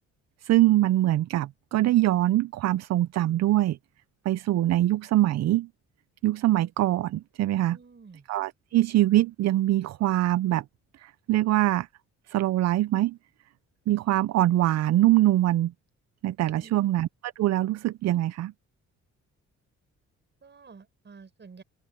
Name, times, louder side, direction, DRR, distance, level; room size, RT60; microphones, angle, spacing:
voice 1, 0.4-3.8 4.3-5.7 6.2-7.8 8.3-10.6 11.0-11.9 12.3-13.2 13.9-15.7 16.2-17.1 17.4-18.5, right 14 dB, 60° right, 0.5 m, -23 dB
voice 2, 7.7-8.3 16.5-16.7 20.4-21.6, right 5 dB, 35° right, 5.7 m, -50 dB
open air
cardioid pair, 90°, 30 cm